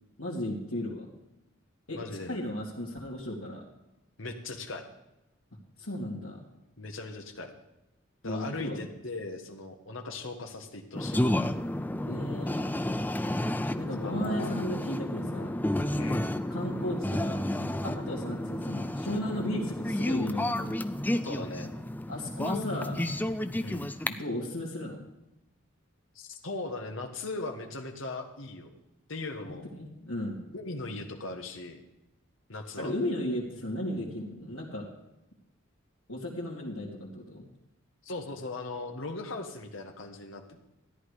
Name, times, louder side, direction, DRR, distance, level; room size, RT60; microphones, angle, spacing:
voice 1, 0.2-1.1 1.9-3.6 5.8-6.4 8.2-8.8 12.1-12.7 13.8-15.5 16.5-17.4 17.8-20.7 22.1-23.1 24.0-25.0 29.4-30.4 32.8-34.9 36.1-37.5, left 1 dB, 90° left, -5 dB, 2.4 m, -35 dB
voice 2, 1.9-2.4 4.2-4.8 6.8-7.5 8.2-11.3 14.0-14.5 16.0-16.3 21.2-21.7 23.6-23.9 26.1-28.7 29.1-29.7 30.5-31.8 32.5-32.9 38.0-40.6, left 2 dB, 65° left, 5 dB, 1.6 m, -39 dB
sound 1, 10.9-24.1, left 1 dB, 10° left, 0.4 m, -31 dB
14.0 x 10.0 x 5.0 m, 0.93 s
head